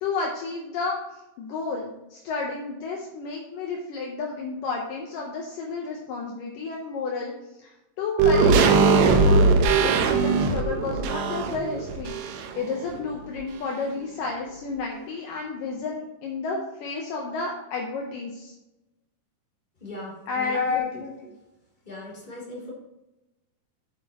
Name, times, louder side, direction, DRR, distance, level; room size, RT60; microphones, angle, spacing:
voice 1, 0.0-1.0 1.4-7.3 7.6-12.2 12.6-18.5 20.3-20.6, left 4 dB, 70° left, -1 dB, 2.4 m, -31 dB
sound 1, 8.2-12.7 13.0-13.1, right 4 dB, 80° right, 2.8 m, -20 dB
voice 2, 19.8-21.3 21.8-22.7, left 4 dB, 15° left, -6 dB, 3.1 m, -32 dB
8.6 x 8.4 x 3.0 m, 0.95 s
omnidirectional pair, 4.4 m